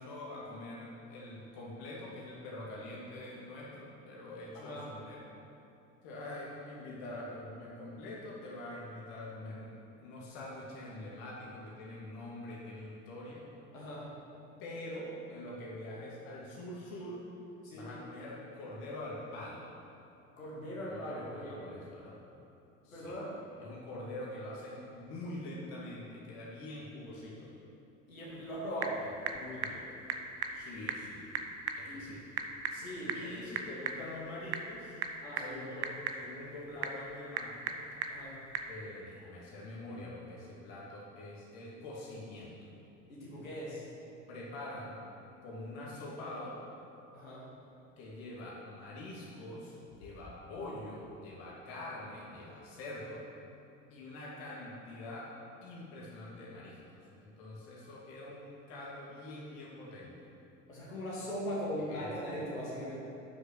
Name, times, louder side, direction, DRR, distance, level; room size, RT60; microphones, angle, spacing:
voice 1, 0.0-5.2 6.0-13.4 14.6-17.2 17.7-19.6 20.9-22.2 22.8-23.1 23.6-27.5 29.3-30.0 30.5-31.3 31.8-32.3 33.1-35.0 35.4-37.8 38.7-42.5 44.3-45.0 45.4-46.6 48.0-53.2 53.9-55.3 55.6-60.1 61.8-62.1, left 1 dB, 55° left, -5 dB, 2.5 m, -45 dB
voice 2, 4.5-4.9 13.7-14.1 17.6-17.9 20.4-21.6 22.9-23.4 28.1-29.1 31.8-32.1 32.7-33.4 35.2-36.0 38.1-38.4 43.1-43.9 47.1-47.5 60.7-62.9, equal, 80° left, -8 dB, 2.5 m, -40 dB
Typing / Telephone, 28.2-38.8, right 6 dB, 35° right, 0.9 m, -40 dB
11.5 x 6.4 x 6.5 m, 2.9 s
figure-of-eight pair, 65°, 40 cm